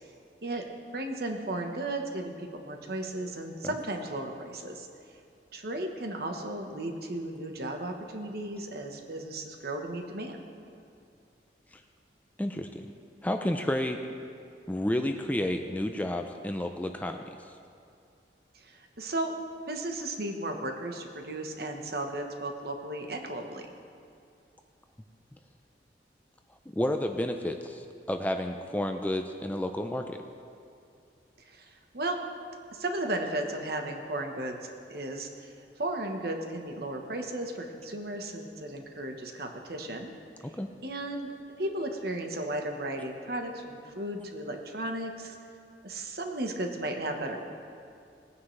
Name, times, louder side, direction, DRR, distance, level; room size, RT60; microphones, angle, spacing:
voice 1, 0.9-4.9 5.5-10.4 18.6-19.3 19.7-23.7 31.5-32.2 32.7-34.6 34.9-35.5 35.8-40.1 40.8-41.3 41.6-45.4 45.8-47.5, right 1 dB, 60° right, 4 dB, 1.2 m, -35 dB
voice 2, 12.4-12.9 13.2-14.0 14.7-17.2 26.7-30.2 40.4-40.7, left 1 dB, 10° left, 5 dB, 0.4 m, -31 dB
19.0 x 9.5 x 3.3 m, 2.5 s
head